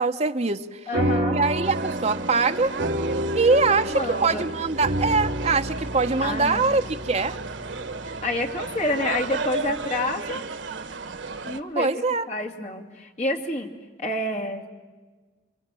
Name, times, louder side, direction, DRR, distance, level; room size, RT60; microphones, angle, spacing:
voice 1, 0.0-0.8 1.3-2.7 3.3-7.4 11.8-12.3, right 4 dB, 35° right, 7 dB, 0.9 m, -23 dB
voice 2, 0.9-1.4 3.6-4.5 6.2-6.8 8.0-10.4 11.4-11.9 12.3-13.7 14.0-14.7, left 1 dB, 40° left, 2 dB, 2.6 m, -28 dB
sound 1, 0.9-9.7, equal, 55° right, 1.6 m, -30 dB
sound 2, 1.6-11.6, right 4 dB, 85° right, 1.2 m, -34 dB
29.5 x 24.5 x 7.6 m, 1.3 s
head